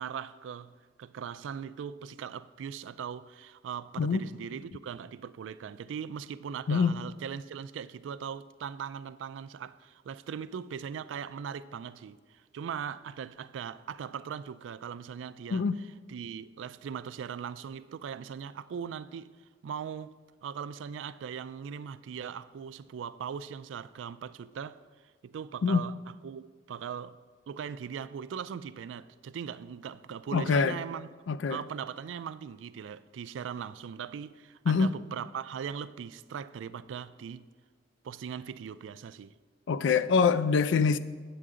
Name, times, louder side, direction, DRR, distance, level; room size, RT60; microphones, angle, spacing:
voice 1, 0.0-15.7 16.1-19.3 19.6-20.2 20.4-24.8 25.2-26.0 26.2-27.2 27.5-31.1 31.5-37.5 38.0-39.4, right 7 dB, 85° right, 0.3 m, -39 dB
voice 2, 30.3-30.8 31.3-31.6 34.7-34.9 39.7-41.0, left 5 dB, 75° left, 0.4 m, -24 dB
8.4 x 7.9 x 3.7 m
head